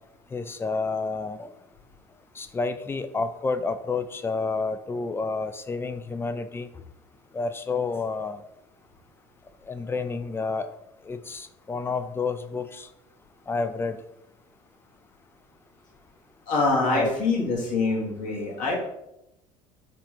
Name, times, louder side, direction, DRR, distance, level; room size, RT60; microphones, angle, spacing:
voice 1, 0.3-1.5 2.4-6.7 7.3-8.4 9.7-10.7 11.1-12.9 13.5-14.0 16.9-17.1, left 4 dB, 15° left, 11 dB, 0.3 m, -29 dB
voice 2, 16.5-18.7, left 3 dB, 50° left, -2 dB, 1.4 m, -24 dB
5.9 x 2.4 x 3.0 m, 0.83 s
figure-of-eight pair, 65°, 17 cm